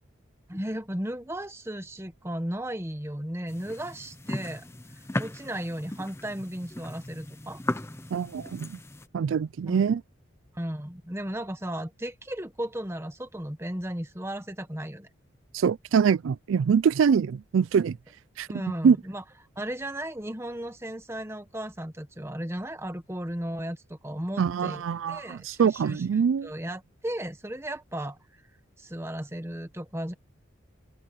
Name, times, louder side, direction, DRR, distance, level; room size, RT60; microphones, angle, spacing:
voice 1, 0.5-4.7 5.2-7.6 9.7-9.8 10.5-15.1 18.5-19.2 19.6-24.8 25.1-26.0 26.4-28.2 28.8-30.1, right 1 dB, 15° right, 1.3 m, -35 dB
sound 1, 3.5-9.1, left 1 dB, 15° left, 0.8 m, -37 dB
voice 2, 8.1-8.8 9.1-10.0 15.5-18.0 18.4-18.5 18.8-19.0 24.4-26.5, right 6 dB, 75° right, 0.3 m, -24 dB
head